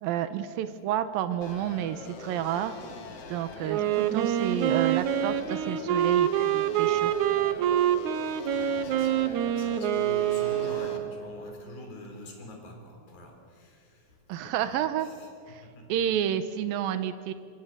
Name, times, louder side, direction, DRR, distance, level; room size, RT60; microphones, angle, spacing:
voice 1, 0.0-2.8 3.3-7.1 14.3-15.1 15.5-15.6 15.9-17.3, right 10 dB, 85° right, 11 dB, 2.7 m, -30 dB
sound 1, 1.4-11.0, left 4 dB, 50° left, 2.8 m, -43 dB
Wind instrument woodwind instrument, 3.7-11.4, right 10 dB, 65° right, 2.2 m, -26 dB
voice 2, 8.5-15.3 15.6-15.9, left 2 dB, 85° left, 3 dB, 5.8 m, -45 dB
25.0 x 24.5 x 7.4 m, 2.3 s
omnidirectional pair, 4.1 m